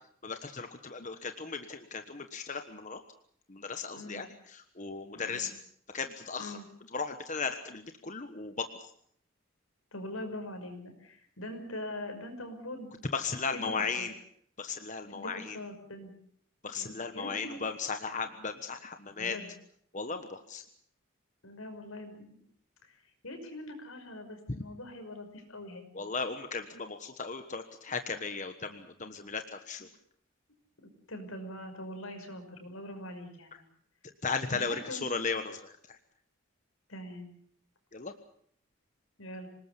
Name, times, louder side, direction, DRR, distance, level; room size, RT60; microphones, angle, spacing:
voice 1, 0.2-3.0 3.5-5.5 5.9-6.6 6.9-8.9 13.1-14.1 14.6-15.6 16.6-19.4 19.9-20.6 25.9-29.9 34.2-36.0 37.9-38.1, left 5 dB, 35° left, 7 dB, 1.3 m, -36 dB
voice 2, 3.9-4.3 5.1-5.5 6.4-6.6 9.9-12.9 13.3-14.1 15.1-16.1 16.7-17.6 19.2-19.5 21.4-22.3 22.8-26.1 31.1-33.6 34.4-35.1 36.9-37.3 39.2-39.5, left 1 dB, 85° left, 6 dB, 5.9 m, -43 dB
26.5 x 19.0 x 7.1 m, 0.63 s
head